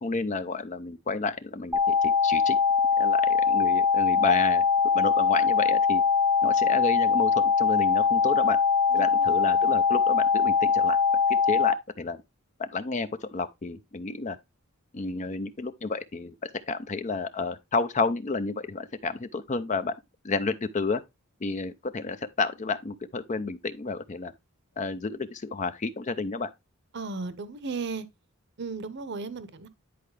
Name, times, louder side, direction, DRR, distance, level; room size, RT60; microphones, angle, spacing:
voice 1, 0.0-2.6 3.0-4.6 4.9-6.0 6.4-8.6 8.9-11.0 11.5-12.2 12.6-14.4 14.9-19.9 20.2-21.0 21.4-24.3 24.8-26.5, left 3 dB, 35° left, 0.5 m, -31 dB
sound 1, 1.7-11.7, left 5 dB, 10° right, 0.8 m, -22 dB
voice 2, 8.9-9.6 26.9-28.1 28.6-29.7, right 4 dB, 55° right, 0.8 m, -36 dB
10.5 x 4.6 x 3.2 m
head